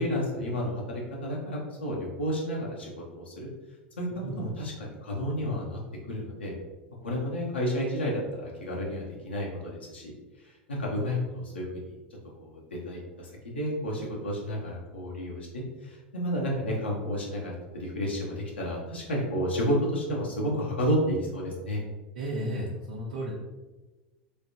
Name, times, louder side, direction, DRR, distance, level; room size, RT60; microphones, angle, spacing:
voice 1, 0.0-3.5 4.0-4.1 4.4-4.7 5.0-5.8 6.1-6.6 7.0-10.1 10.4-11.9 12.4-21.8, equal, 90° left, -4 dB, 0.7 m, -31 dB
voice 2, 22.2-23.3, right 1 dB, 70° right, -6 dB, 0.8 m, -33 dB
3.2 x 3.2 x 2.7 m, 1.2 s
hypercardioid pair, 90°, 6 cm